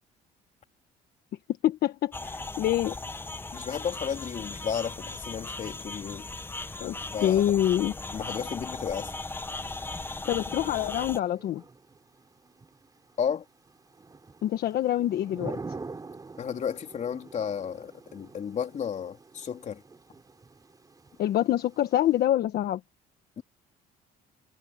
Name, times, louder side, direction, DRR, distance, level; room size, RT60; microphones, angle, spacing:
voice 1, 1.6-3.0 6.8-7.9 10.2-11.6 14.4-15.6 21.2-22.8, left 12 dB, 65° left, 1.3 m, -26 dB
sound 1, 2.1-11.2, left 2 dB, 15° left, 0.9 m, -37 dB
voice 2, 3.5-6.3 7.1-7.4 8.1-9.1 13.2-13.4 16.4-19.8 23.4-23.5, left 7 dB, 45° left, 3.5 m, -33 dB
Thunder / Rain, 9.5-22.2, right 4 dB, 20° right, 5.2 m, -46 dB
cardioid pair, 110°, 17 cm